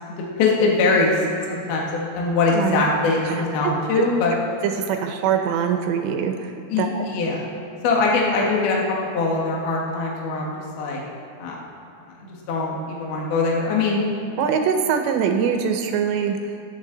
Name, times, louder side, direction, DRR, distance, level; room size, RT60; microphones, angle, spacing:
voice 1, 0.2-1.2 1.5-4.3 6.7-7.4 7.8-11.0 11.4-11.6 12.2-14.0, left 3 dB, 60° left, -3 dB, 3.1 m, -22 dB
voice 2, 2.5-2.8 3.3-3.4 4.0-4.1 4.6-6.5 6.8-7.1 14.4-16.4, right 7 dB, 80° right, 5 dB, 2.6 m, -23 dB
25.0 x 8.4 x 4.0 m, 2.5 s
omnidirectional pair, 5.8 m